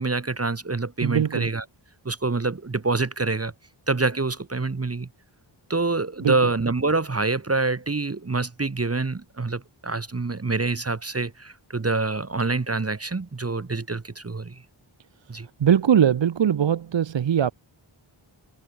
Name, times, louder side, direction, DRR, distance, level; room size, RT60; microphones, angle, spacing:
voice 1, 0.0-1.6 2.0-3.5 3.9-5.1 5.7-14.6 15.3-15.5, right 3 dB, 30° right, 0.9 m, -26 dB
voice 2, 1.0-1.5 6.2-6.4 15.6-17.5, right 9 dB, 60° right, 0.7 m, -21 dB
wide cardioid pair, 45°, 50 cm